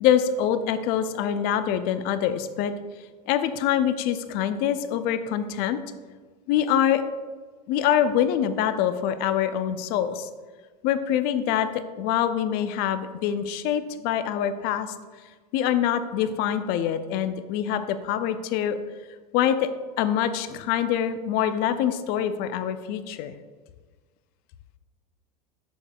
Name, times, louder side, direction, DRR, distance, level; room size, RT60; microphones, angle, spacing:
voice 1, 0.0-2.7 3.3-5.8 6.5-7.0 7.7-10.3 10.8-11.7 12.0-15.0 15.5-18.8 19.3-19.7 20.0-23.3, left 10 dB, 50° left, 11 dB, 0.5 m, -25 dB
7.0 x 6.4 x 2.3 m, 1.4 s
hypercardioid pair, 90°, 21 cm